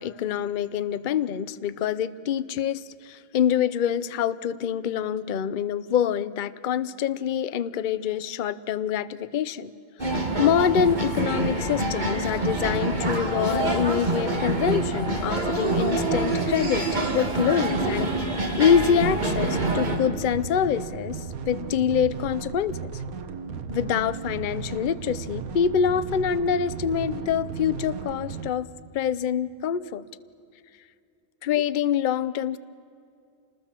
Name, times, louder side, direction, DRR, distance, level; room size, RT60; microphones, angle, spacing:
voice 1, 0.0-9.7 10.4-16.9 17.1-18.1 18.6-21.2 21.5-22.9 23.7-28.7 28.9-30.0 31.4-32.6, left 8 dB, 50° left, 16 dB, 0.7 m, -25 dB
sound 1, 10.0-20.0, right 2 dB, 30° right, 2.4 m, -26 dB
sound 2, 18.7-28.5, right 6 dB, 85° right, 1.5 m, -35 dB
27.0 x 20.5 x 7.4 m, 2.4 s
omnidirectional pair, 1.5 m